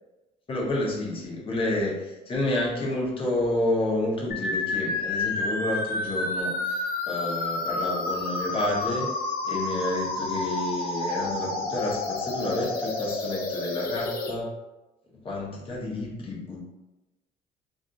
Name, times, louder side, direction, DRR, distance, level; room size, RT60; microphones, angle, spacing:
voice 1, 0.5-9.1 9.4-14.5 15.2-16.6, left 2 dB, 30° left, -4 dB, 0.9 m, -29 dB
sound 1, 4.3-14.3, left 2 dB, 60° left, 0.5 m, -30 dB
2.6 x 2.4 x 2.4 m, 1.0 s
cardioid pair, 110°, 17 cm